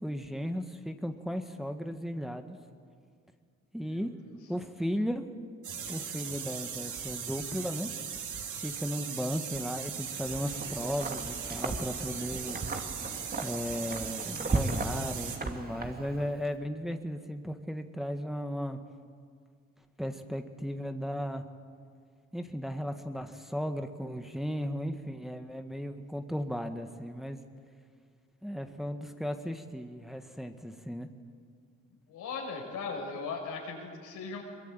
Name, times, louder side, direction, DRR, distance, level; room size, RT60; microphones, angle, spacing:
voice 1, 0.0-2.6 3.7-4.1 4.5-5.2 5.9-7.9 8.6-12.6 13.4-18.8 20.0-21.4 22.3-27.4 28.4-31.1, equal, ahead, 6 dB, 1.6 m, -35 dB
sound 1, 5.6-15.4, right 7 dB, 75° right, 3.3 m, -39 dB
Wind, 10.0-16.5, right 3 dB, 30° right, 2.4 m, -36 dB
voice 2, 32.1-34.4, left 4 dB, 85° left, 1 dB, 6.3 m, -38 dB
23.0 x 22.5 x 9.1 m, 2.1 s
cardioid pair, 90°, 30 cm